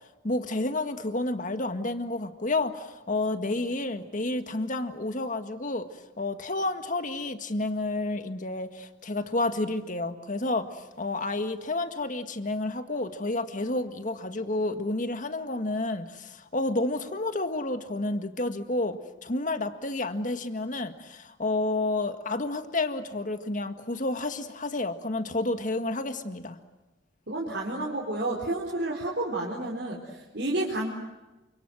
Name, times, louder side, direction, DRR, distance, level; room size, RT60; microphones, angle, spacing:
voice 1, 0.2-5.9 6.2-26.6, left 2 dB, 45° left, 8 dB, 1.8 m, -30 dB
voice 2, 27.3-30.9, right 2 dB, 65° right, -3 dB, 4.3 m, -30 dB
29.0 x 26.0 x 7.8 m, 1.1 s
head